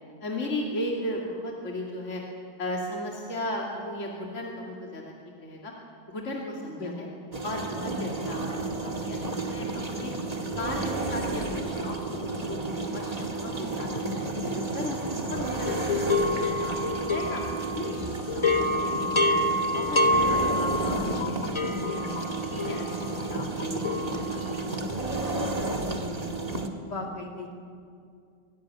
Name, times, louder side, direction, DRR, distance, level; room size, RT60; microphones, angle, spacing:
voice 1, 0.2-2.2 2.6-5.7 6.1-7.1 7.4-10.1 10.5-12.6 12.9-15.0 15.3-16.3 16.6-17.4 17.7-19.2 19.7-21.2 21.6-22.2 22.6-25.0 25.3-25.7 26.0-26.2, left 1 dB, 40° left, -2 dB, 2.9 m, -36 dB
voice 2, 6.7-7.2 26.8-27.5, left 3 dB, 60° left, 0 dB, 2.7 m, -37 dB
sound 1, 7.3-26.7, right 2 dB, 20° right, 1.8 m, -32 dB
sound 2, 15.7-18.0 18.3-24.6, left 2 dB, 20° left, 0.8 m, -27 dB
24.0 x 17.0 x 9.8 m, 2.3 s
omnidirectional pair, 2.0 m